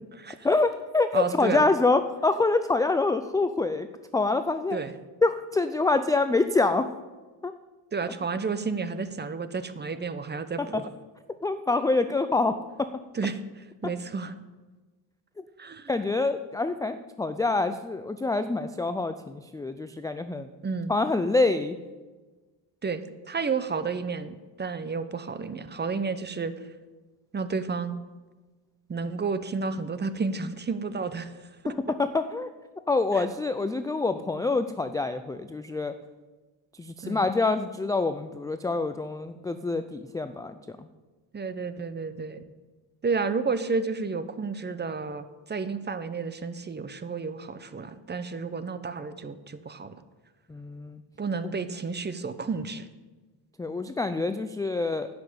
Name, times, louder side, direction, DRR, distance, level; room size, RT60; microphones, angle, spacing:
voice 1, 0.4-3.9 4.1-4.8 5.2-6.9 7.4-7.5 11.4-12.9 15.9-20.5 20.9-21.8 31.7-32.5 32.9-35.9 36.8-40.9 50.5-51.0 53.6-55.1, left 3 dB, 10° left, 10 dB, 0.4 m, -26 dB
voice 2, 1.1-1.7 4.7-4.9 7.9-10.9 13.1-14.3 15.6-15.9 20.6-20.9 22.8-26.5 27.3-28.0 28.9-31.3 33.1-33.3 37.0-37.3 41.3-42.4 43.0-50.0 51.2-52.9, right 4 dB, 20° right, 12 dB, 0.8 m, -31 dB
10.5 x 6.1 x 8.5 m, 1.2 s
cardioid pair, 100°, 47 cm